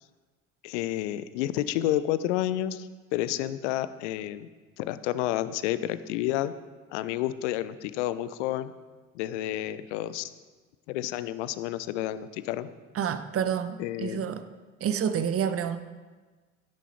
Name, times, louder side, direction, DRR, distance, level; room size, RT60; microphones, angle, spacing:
voice 1, 0.6-4.5 4.8-6.5 6.9-8.7 9.1-10.3 10.9-12.7 13.8-14.2, left 13 dB, 65° left, 14 dB, 0.9 m, -30 dB
voice 2, 12.9-14.4 14.8-15.8, right 8 dB, 35° right, 10 dB, 1.1 m, -28 dB
17.0 x 10.0 x 4.5 m, 1.3 s
figure-of-eight pair, 60°, 39 cm